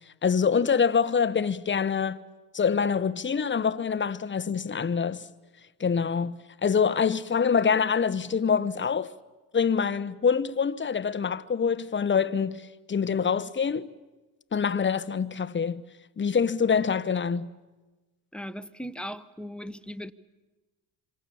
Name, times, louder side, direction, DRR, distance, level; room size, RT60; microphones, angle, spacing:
voice 1, 0.2-2.2 2.5-5.2 5.8-9.1 9.5-13.9 14.5-15.8 16.2-17.5, left 6 dB, 30° left, 1.1 m, -25 dB
voice 2, 18.3-20.1, equal, ahead, 1.0 m, -38 dB
26.5 x 26.0 x 7.1 m
supercardioid pair, 80°, 40 cm